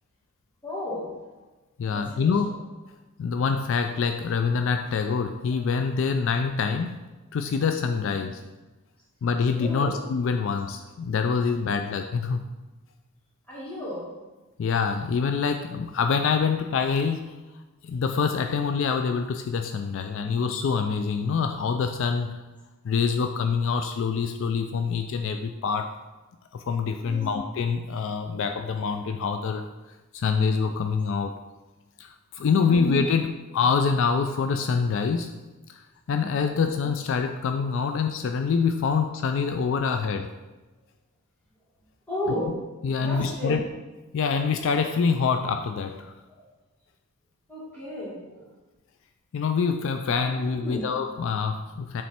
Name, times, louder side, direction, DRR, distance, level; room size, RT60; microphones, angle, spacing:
voice 1, 0.6-1.1 1.9-2.3 9.6-9.9 13.5-14.1 27.0-27.4 32.5-32.9 36.4-36.7 42.1-42.6 43.0-43.6 46.3-46.4 47.5-48.5 50.6-50.8, equal, 5° left, -8 dB, 2.1 m, -34 dB
voice 2, 1.8-2.5 3.2-7.0 7.3-8.4 9.2-12.5 14.6-17.3 17.8-22.4 22.8-26.0 26.5-29.7 30.1-31.3 32.0-35.3 35.7-35.8 36.1-40.3 42.8-43.7 44.1-46.2 49.3-52.0, left 5 dB, 60° left, 6 dB, 0.3 m, -25 dB
7.2 x 3.2 x 4.3 m, 1.1 s
head